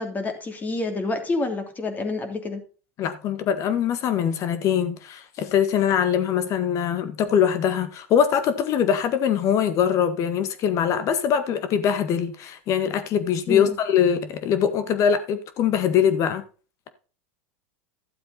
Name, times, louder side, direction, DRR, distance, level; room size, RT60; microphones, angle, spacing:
voice 1, 0.0-2.6 13.5-13.8, left 2 dB, 25° left, 2.9 m, -28 dB
voice 2, 3.0-16.4, left 8 dB, 45° left, 1.9 m, -22 dB
12.5 x 7.6 x 4.1 m
hypercardioid pair, 105°, 7 cm